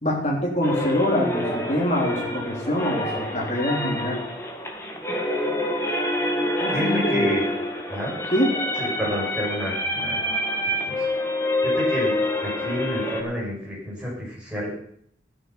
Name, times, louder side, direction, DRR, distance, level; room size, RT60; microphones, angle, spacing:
voice 1, 0.0-4.2 6.6-7.3 8.3-8.5, left 1 dB, 35° left, -3 dB, 3.5 m, -24 dB
sound 1, 0.6-13.2, left 1 dB, 15° left, 1.9 m, -27 dB
voice 2, 6.7-7.4 7.9-8.1 8.8-10.3 10.9-11.0 11.6-12.1 12.4-14.7, equal, 5° right, -6 dB, 6.2 m, -29 dB
14.0 x 10.0 x 5.7 m, 0.66 s
head